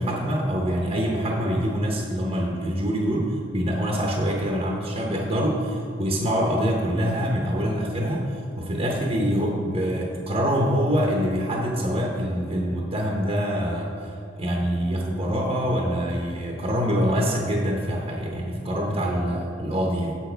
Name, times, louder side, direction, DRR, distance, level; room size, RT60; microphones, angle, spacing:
voice 1, 0.0-20.2, equal, 30° right, -1 dB, 0.8 m, -25 dB
7.3 x 7.1 x 4.5 m, 2.4 s
head